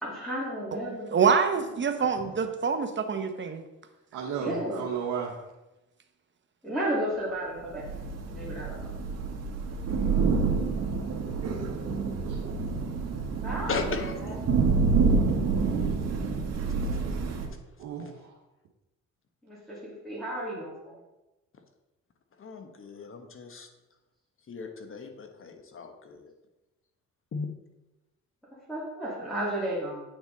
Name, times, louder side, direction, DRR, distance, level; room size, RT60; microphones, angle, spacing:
voice 1, 0.0-1.1 4.4-4.8 6.6-8.0 8.3-9.1 13.4-14.4 19.4-21.0 28.7-30.0, right 1 dB, ahead, -7 dB, 2.4 m, -33 dB
voice 2, 1.1-3.6 4.5-4.6, right 6 dB, 40° right, 7 dB, 1.0 m, -26 dB
voice 3, 2.0-2.3 13.7-14.4 22.4-23.7 24.5-26.3 27.3-27.5, left 4 dB, 45° left, 6 dB, 1.2 m, -37 dB
voice 4, 4.1-5.4 12.3-12.4 13.7-13.8 17.8-18.3, right 7 dB, 85° right, -1 dB, 1.1 m, -34 dB
Thunder / Rain, 7.7-17.5, right 4 dB, 55° right, 1.6 m, -28 dB
8.8 x 6.0 x 4.0 m, 1.0 s
cardioid pair, 90°, 30 cm